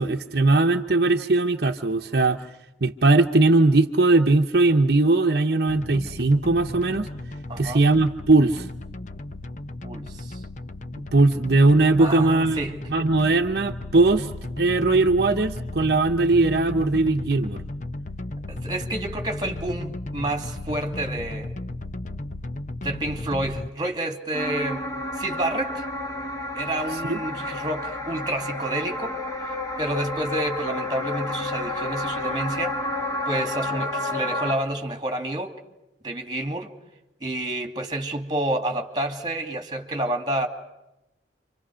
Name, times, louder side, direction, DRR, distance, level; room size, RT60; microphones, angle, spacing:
voice 1, 0.0-2.5 2.8-7.1 7.6-8.7 11.1-12.6 12.9-14.3 14.6-17.6 27.1-27.2, right 2 dB, 55° right, 0.9 m, -19 dB
sound 1, 5.7-23.7, left 2 dB, 40° left, 0.8 m, -35 dB
voice 2, 7.5-7.8 9.8-10.4 12.0-12.9 18.5-21.5 22.8-25.8 26.5-29.2 29.5-32.8 33.3-35.5 36.0-36.7 37.2-40.5, right 1 dB, 25° right, 2.4 m, -29 dB
sound 2, 24.3-34.6, left 2 dB, 20° left, 2.5 m, -30 dB
29.0 x 25.5 x 6.3 m
head